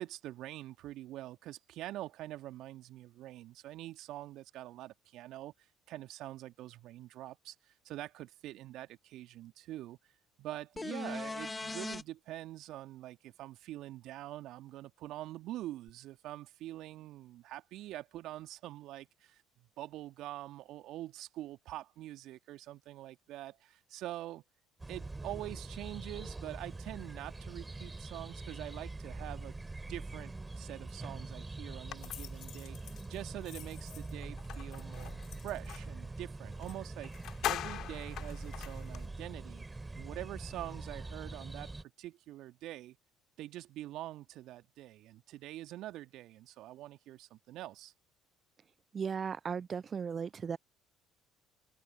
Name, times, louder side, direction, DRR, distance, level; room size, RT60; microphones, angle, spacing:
voice 1, 0.0-5.5 5.9-10.0 10.4-24.4 24.9-35.2 35.4-37.1 37.4-39.7 39.9-43.0 43.4-47.9, right 15 dB, 60° right, 1.8 m, -45 dB
sound 1, 10.8-12.0 15.9-16.0, left 3 dB, 20° left, 0.5 m, -39 dB
sound 2, 24.8-41.8, right 2 dB, 15° right, 3.4 m, -44 dB
sound 3, 31.9-35.9 36.6-36.8 37.0-39.1, left 13 dB, 55° left, 2.1 m, -42 dB
voice 2, 48.9-50.6, right 6 dB, 40° right, 0.4 m, -36 dB
hypercardioid pair, 60°, 0 cm